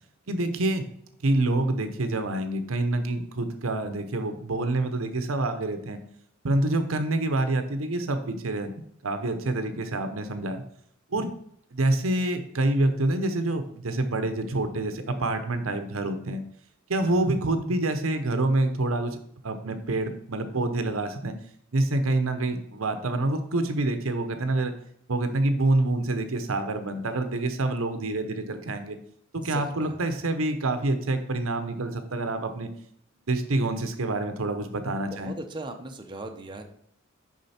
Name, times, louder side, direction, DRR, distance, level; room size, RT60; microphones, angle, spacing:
voice 1, 0.3-0.9 1.2-6.0 6.4-8.7 9.0-10.6 11.1-11.3 11.7-16.4 16.9-19.2 19.4-21.3 21.7-24.7 25.1-29.0 29.3-32.7 33.3-35.3, right 2 dB, 80° right, 8 dB, 0.8 m, -27 dB
voice 2, 17.0-17.4 29.4-30.2 35.1-36.6, right 2 dB, 25° right, 4 dB, 0.7 m, -40 dB
6.5 x 5.3 x 4.3 m, 0.69 s
head